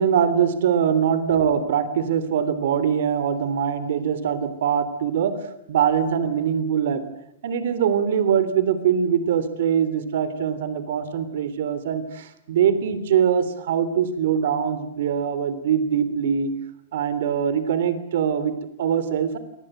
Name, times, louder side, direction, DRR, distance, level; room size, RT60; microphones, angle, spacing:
voice 1, 0.0-5.4 5.7-7.0 7.4-16.5 16.9-19.4, right 8 dB, 70° right, 13 dB, 3.2 m, -22 dB
27.0 x 20.5 x 9.0 m, 0.77 s
hypercardioid pair, 150°, 0 cm